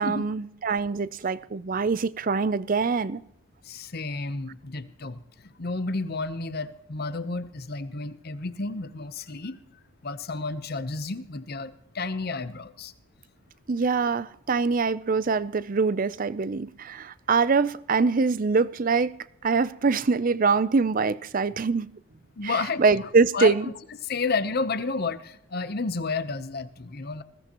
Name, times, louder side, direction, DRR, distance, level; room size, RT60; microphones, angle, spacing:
voice 1, 0.0-3.2 13.7-19.1 19.4-21.9 22.4-23.7, right 4 dB, 40° right, 0.5 m, -24 dB
voice 2, 3.7-9.6 10.0-12.9 22.4-23.5 24.0-27.2, left 3 dB, 45° left, 0.8 m, -31 dB
20.5 x 16.5 x 3.0 m
head